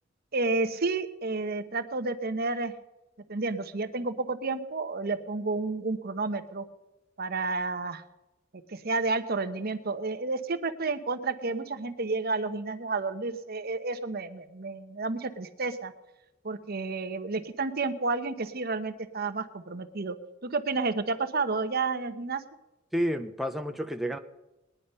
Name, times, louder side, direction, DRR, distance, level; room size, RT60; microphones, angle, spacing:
voice 1, 0.3-2.7 3.3-6.6 7.2-8.0 8.7-15.9 16.4-20.2 20.4-22.4, right 3 dB, 55° right, 10 dB, 1.0 m, -31 dB
voice 2, 22.9-24.2, equal, ahead, 5 dB, 0.6 m, -30 dB
20.0 x 10.5 x 5.5 m, 1.0 s
head